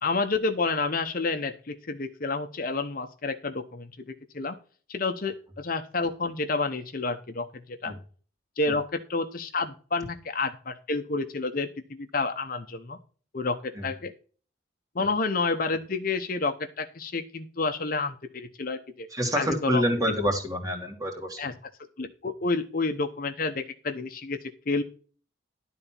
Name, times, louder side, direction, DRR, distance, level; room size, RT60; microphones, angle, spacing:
voice 1, 0.0-4.6 4.9-7.9 8.6-13.0 13.3-14.1 14.9-19.1 19.3-19.8 21.4-21.5 22.0-24.8, left 3 dB, 45° left, 7 dB, 0.8 m, -29 dB
voice 2, 19.1-21.4, equal, 20° right, 3 dB, 2.4 m, -27 dB
12.0 x 4.0 x 7.3 m, 0.40 s
head